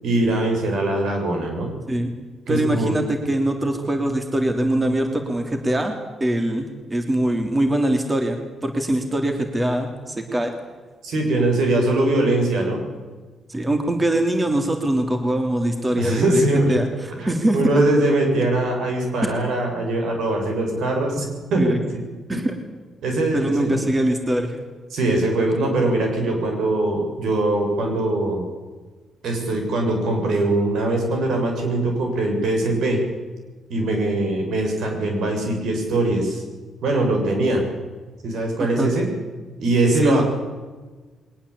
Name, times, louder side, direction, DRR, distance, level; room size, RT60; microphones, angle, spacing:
voice 1, 0.0-1.7 2.5-3.0 11.0-12.8 15.9-16.7 17.2-21.8 22.3-22.5 23.0-23.8 24.9-28.4 29.2-33.0 33.7-36.4 36.8-37.6 38.2-39.1 39.6-40.2, right 2 dB, 75° right, 3 dB, 7.1 m, -22 dB
voice 2, 2.5-5.9 6.2-10.5 13.5-16.4 16.7-17.6 19.2-19.3 21.6-21.8 22.3-22.6 23.3-24.6 38.6-38.9 40.0-40.2, right 1 dB, 20° right, 5 dB, 3.2 m, -22 dB
22.0 x 19.0 x 8.5 m, 1.4 s
cardioid pair, 70°, 0 cm